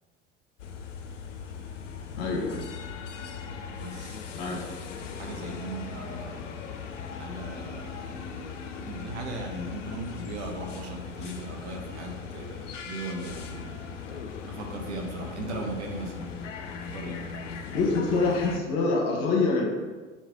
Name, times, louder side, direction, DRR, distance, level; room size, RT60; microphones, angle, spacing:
sound 1, 0.6-18.6, left 6 dB, 70° left, 0.5 m, -39 dB
voice 1, 2.2-2.7 4.4-4.6 17.7-19.6, left 3 dB, 50° left, -1 dB, 1.0 m, -25 dB
voice 2, 3.7-6.4 7.1-8.3 8.8-13.6 14.4-16.2 16.8-17.2, right 2 dB, 60° right, 1 dB, 0.9 m, -38 dB
4.1 x 3.2 x 3.7 m, 1.3 s
figure-of-eight pair, 75°, 38 cm